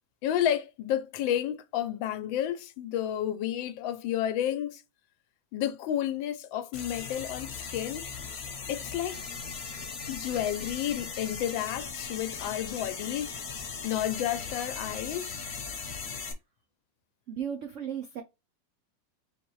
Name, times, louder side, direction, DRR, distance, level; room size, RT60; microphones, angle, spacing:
voice 1, 0.2-4.8 5.5-8.0 8.7-9.2 10.1-13.4 13.8-15.4, left 11 dB, 90° left, 1.4 m, -31 dB
sound 1, 6.7-16.3, left 5 dB, 45° left, 0.9 m, -38 dB
voice 2, 17.3-18.2, right 8 dB, 75° right, 0.6 m, -36 dB
4.6 x 3.2 x 3.1 m
omnidirectional pair, 2.0 m